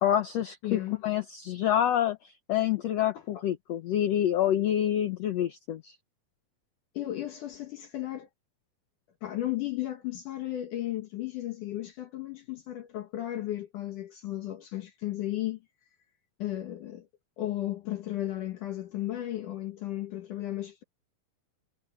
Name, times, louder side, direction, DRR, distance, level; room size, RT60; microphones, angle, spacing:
voice 1, 0.0-5.9, left 11 dB, 90° left, 1.4 m, -27 dB
voice 2, 0.6-1.0 6.9-8.3 9.2-15.6 16.4-17.1 17.4-20.8, left 14 dB, 65° left, 2.6 m, -34 dB
omnidirectional pair, 4.3 m